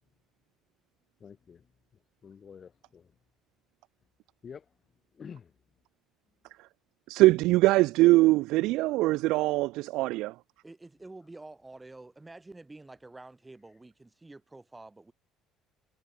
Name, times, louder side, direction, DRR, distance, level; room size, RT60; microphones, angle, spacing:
voice 1, 1.2-3.2 4.4-4.7 5.1-5.5, left 6 dB, 30° left, 2.1 m, -49 dB
voice 2, 7.1-10.3, right 19 dB, 75° right, 0.6 m, -22 dB
voice 3, 10.6-15.1, right 2 dB, 10° right, 5.1 m, -48 dB
cardioid pair, 150°, 0 cm